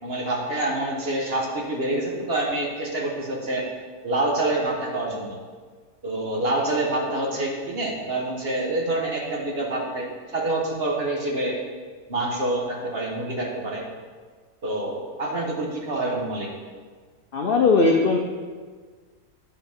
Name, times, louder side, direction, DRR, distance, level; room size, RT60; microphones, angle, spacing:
voice 1, 0.0-3.7 4.0-5.4 6.0-11.6 12.1-13.9 14.6-16.5, right 2 dB, 40° right, -1 dB, 1.3 m, -27 dB
voice 2, 17.3-18.2, left 4 dB, 75° left, 2 dB, 0.5 m, -18 dB
11.0 x 4.9 x 3.5 m, 1.5 s
omnidirectional pair, 1.7 m